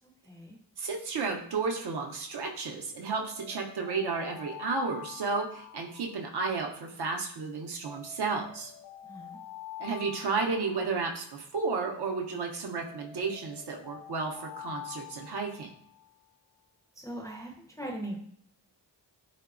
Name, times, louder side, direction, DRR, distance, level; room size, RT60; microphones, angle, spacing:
voice 1, 0.0-0.6 9.0-9.4 17.0-18.2, right 1 dB, 10° left, -1 dB, 0.4 m, -40 dB
voice 2, 0.8-8.7 9.8-15.7, right 4 dB, 60° right, 1 dB, 0.5 m, -32 dB
Alarm, 3.3-6.7 7.8-11.7 12.8-16.1, left 12 dB, 65° left, 0.6 m, -46 dB
2.9 x 2.1 x 2.3 m, 0.65 s
cardioid pair, 55°, 44 cm